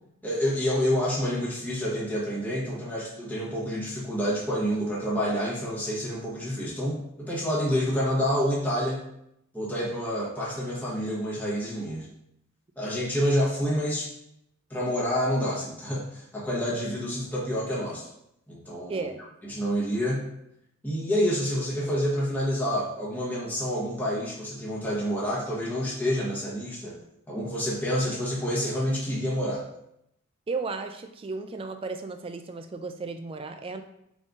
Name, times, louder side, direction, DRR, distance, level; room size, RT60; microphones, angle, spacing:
voice 1, 0.2-9.0 9.5-12.1 12.8-14.1 14.7-18.1 18.5-19.0 19.4-20.3 20.8-27.0 27.3-29.6, equal, 10° left, -6 dB, 1.0 m, -28 dB
voice 2, 18.9-19.2 30.5-33.8, right 4 dB, 25° right, 7 dB, 0.3 m, -34 dB
5.4 x 3.5 x 2.6 m, 0.77 s
head